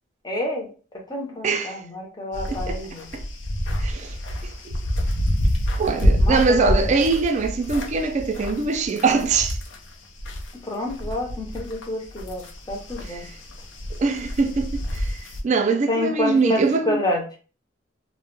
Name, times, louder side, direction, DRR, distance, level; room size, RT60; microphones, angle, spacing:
voice 1, 0.2-0.7 1.1-3.1 6.2-6.8 10.6-13.2 15.9-17.2, left 1 dB, 20° left, 0.6 m, -28 dB
voice 2, 1.4-1.8 2.5-2.8 3.1-3.2 3.8-4.1 5.8-9.6 13.1-13.2 14.0-15.0 15.4-17.0, right 4 dB, 35° right, 0.3 m, -22 dB
sound 1, 2.3-10.5 10.8-15.4, equal, 70° left, 0.5 m, -27 dB
2.1 x 2.0 x 3.0 m
head